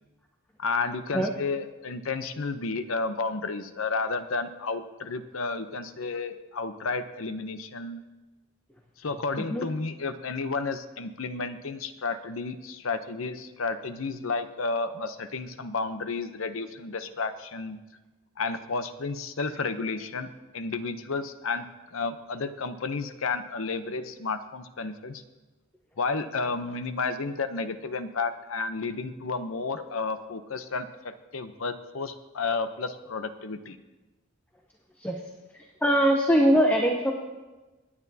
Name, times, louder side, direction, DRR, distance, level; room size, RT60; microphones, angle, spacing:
voice 1, 0.6-8.0 9.0-17.8 18.4-25.2 26.0-33.8, left 4 dB, 80° left, 10 dB, 0.7 m, -32 dB
voice 2, 35.8-37.1, equal, 10° left, 1 dB, 0.8 m, -21 dB
24.0 x 9.8 x 2.8 m, 1.2 s
head